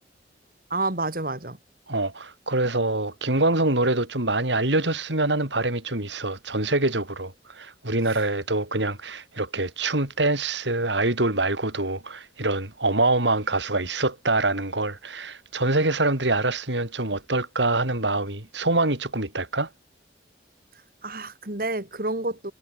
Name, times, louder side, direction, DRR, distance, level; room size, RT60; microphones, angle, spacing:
voice 1, 0.7-1.6 21.0-22.5, right 2 dB, 50° right, 2.4 m, -29 dB
voice 2, 1.9-19.7, right 2 dB, 80° right, 4.6 m, -25 dB
head